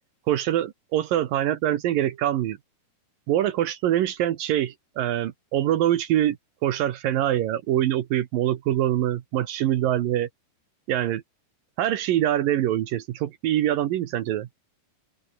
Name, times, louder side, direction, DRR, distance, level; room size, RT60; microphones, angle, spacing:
voice 1, 0.3-2.6 3.3-6.4 6.6-10.3 10.9-11.2 11.8-14.5, right 12 dB, 75° right, 2.9 m, -24 dB
open air
omnidirectional pair, 4.2 m